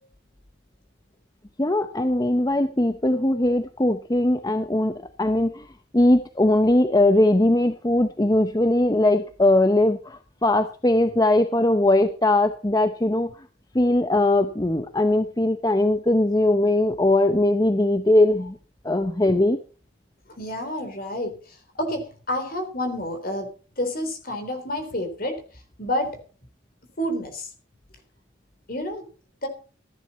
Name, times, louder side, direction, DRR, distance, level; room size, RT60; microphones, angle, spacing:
voice 1, 1.6-5.7 5.9-13.3 13.7-18.6 18.8-19.6, left 1 dB, 20° left, 9 dB, 0.7 m, -20 dB
voice 2, 20.3-23.5 23.8-25.4 25.8-26.1 27.0-27.5 28.7-29.0 29.4-29.5, left 1 dB, 45° left, 7 dB, 3.7 m, -29 dB
15.5 x 10.5 x 4.2 m, 0.38 s
head